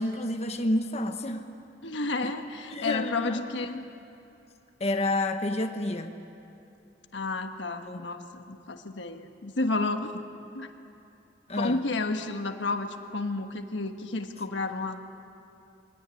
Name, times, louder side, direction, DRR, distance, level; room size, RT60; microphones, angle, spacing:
voice 1, 0.0-1.5 2.2-2.3 2.7-3.4 4.8-6.1 7.8-8.0 11.5-11.8, left 1 dB, 35° left, 5 dB, 1.1 m, -29 dB
voice 2, 1.8-3.8 7.1-10.2 10.5-10.7 11.6-15.1, left 3 dB, 85° left, 6 dB, 1.3 m, -31 dB
24.0 x 17.5 x 9.8 m, 2.8 s
head